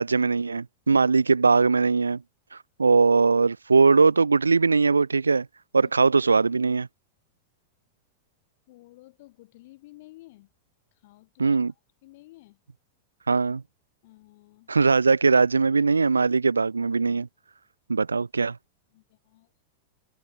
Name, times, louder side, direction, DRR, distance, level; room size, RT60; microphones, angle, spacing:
voice 1, 0.0-2.2 2.5-5.5 5.7-6.9 11.4-11.7 13.3-13.6 14.7-17.3 17.9-18.6, right 4 dB, 75° right, 0.5 m, -20 dB
voice 2, 8.7-10.5 11.0-11.6 12.0-12.6 14.0-14.7 18.9-19.5, left 19 dB, 50° left, 7.2 m, -52 dB
open air
figure-of-eight pair, 90°, 0 cm